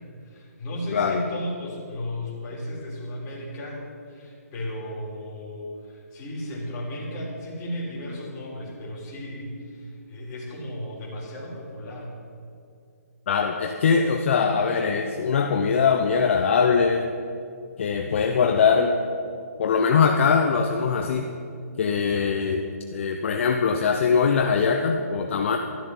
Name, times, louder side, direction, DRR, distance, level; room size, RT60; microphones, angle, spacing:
voice 1, 0.0-3.8 4.1-12.2, left 1 dB, 25° left, -5 dB, 3.6 m, -35 dB
voice 2, 0.9-1.2 13.3-17.1 17.8-19.0 19.6-21.3 21.8-25.6, left 5 dB, 45° left, 4 dB, 0.9 m, -22 dB
13.0 x 7.4 x 9.8 m, 2.4 s
hypercardioid pair, 160°, 9 cm